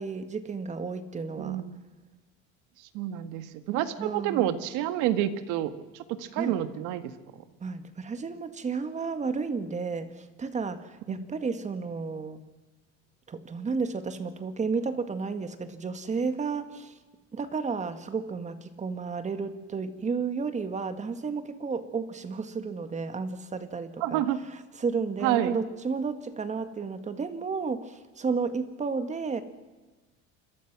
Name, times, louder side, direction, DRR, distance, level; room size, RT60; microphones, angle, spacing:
voice 1, 0.0-1.6 4.0-4.5 6.4-6.6 7.6-12.4 13.3-16.9 17.3-24.2 24.8-29.4, right 5 dB, 25° right, 10 dB, 1.8 m, -32 dB
voice 2, 1.4-1.8 2.9-7.1 11.1-11.3 24.0-24.4 25.2-25.6, right 12 dB, 80° right, 10 dB, 1.9 m, -29 dB
28.0 x 23.0 x 6.2 m, 1.2 s
cardioid pair, 140°, 30 cm